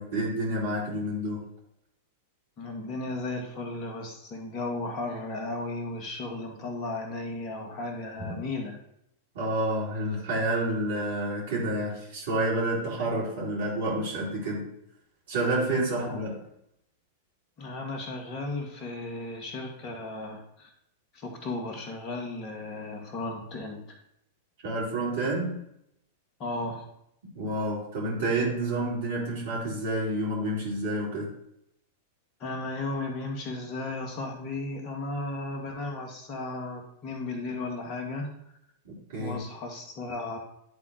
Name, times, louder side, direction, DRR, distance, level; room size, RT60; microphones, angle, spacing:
voice 1, 0.0-1.4 8.2-8.3 9.3-14.7 15.3-16.3 24.6-25.6 27.3-31.3 38.8-39.4, right 1 dB, 60° right, -5 dB, 2.8 m, -29 dB
voice 2, 2.6-8.8 15.9-16.2 17.6-20.7 21.1-23.8 26.4-26.8 32.4-38.3 39.2-40.4, left 2 dB, 35° left, 3 dB, 1.6 m, -35 dB
10.0 x 3.7 x 4.0 m, 0.76 s
figure-of-eight pair, 95°, 0 cm